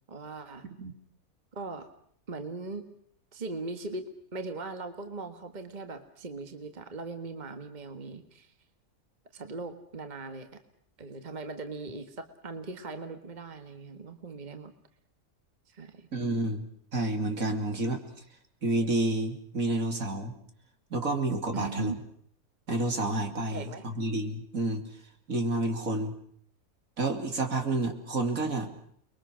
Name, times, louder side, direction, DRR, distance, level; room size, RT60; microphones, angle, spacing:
voice 1, 0.1-0.6 1.5-1.9 2.3-2.8 3.3-4.0 4.3-8.5 9.3-10.5 11.0-14.7 15.7-16.1 21.5-22.0 23.5-23.8, right 3 dB, 30° right, 7 dB, 1.7 m, -39 dB
voice 2, 16.1-16.6 16.9-18.0 18.6-20.3 20.9-21.9 22.7-24.8 25.3-26.1 27.0-28.7, right 2 dB, 65° right, 5 dB, 3.4 m, -29 dB
30.0 x 22.0 x 6.3 m, 0.63 s
omnidirectional pair, 1.5 m